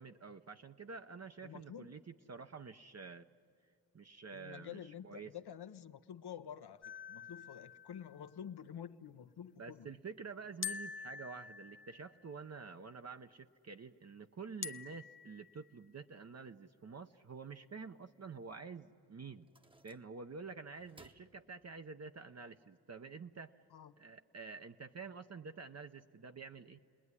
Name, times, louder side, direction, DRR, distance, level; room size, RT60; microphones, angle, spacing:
voice 1, 0.0-2.0 2.3-3.3 3.9-5.3 9.6-19.5 19.8-23.6 24.0-26.8, right 5 dB, 40° right, 7 dB, 0.7 m, -49 dB
voice 2, 1.4-1.9 4.3-9.9 23.7-23.9, left 9 dB, 70° left, 9 dB, 0.8 m, -49 dB
sound 1, 6.8-8.3 10.6-12.3 14.6-15.7, left 6 dB, 30° left, 0.6 m, -46 dB
sound 2, 19.4-20.4 20.7-22.1, right 2 dB, 10° right, 0.9 m, -64 dB
29.5 x 20.0 x 9.7 m, 2.6 s
cardioid pair, 60°, 41 cm